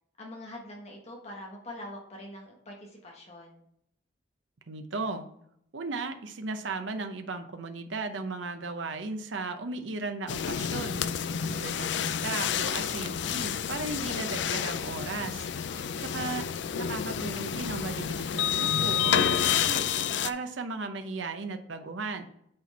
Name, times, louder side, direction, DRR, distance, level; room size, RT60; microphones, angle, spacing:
voice 1, 0.2-3.6 15.7-16.2, left 1 dB, 35° left, -1 dB, 1.3 m, -44 dB
voice 2, 4.7-5.3 5.7-15.5 15.7-16.4 16.8-19.8 20.2-22.3, right 3 dB, 85° right, 7 dB, 0.7 m, -36 dB
sound 1, 10.3-20.3, left 8 dB, 70° left, 0.4 m, -29 dB
8.7 x 4.3 x 4.2 m, 0.71 s
head